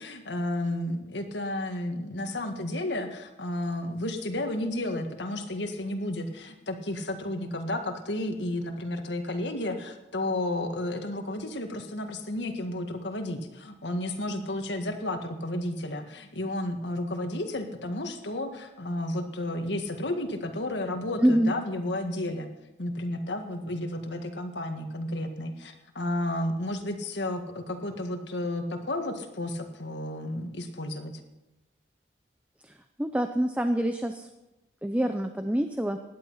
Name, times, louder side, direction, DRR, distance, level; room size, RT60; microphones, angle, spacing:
voice 1, 0.0-22.5 22.8-31.1, left 1 dB, 80° left, 5 dB, 1.8 m, -32 dB
voice 2, 21.2-21.5 32.6-34.3 34.8-36.0, equal, 5° right, 7 dB, 0.6 m, -26 dB
17.0 x 11.5 x 5.7 m, 0.99 s
head